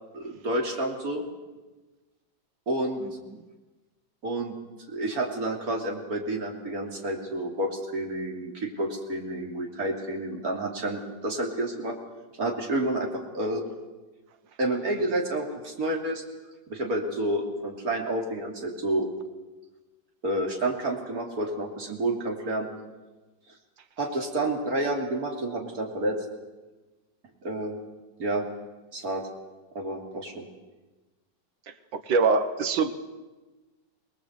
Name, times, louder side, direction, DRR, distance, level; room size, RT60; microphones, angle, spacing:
voice 1, 0.1-1.2 2.7-3.0 4.2-4.5 4.9-12.0 12.4-13.6 14.6-16.2 16.7-19.1 20.2-22.7 24.0-26.2 27.4-27.7 28.2-28.4 28.9-29.3 29.8-30.5, right 1 dB, 50° right, 1 dB, 3.3 m, -29 dB
voice 2, 31.9-32.9, right 4 dB, 90° right, 9 dB, 2.0 m, -23 dB
23.5 x 20.0 x 8.1 m, 1.2 s
omnidirectional pair, 2.0 m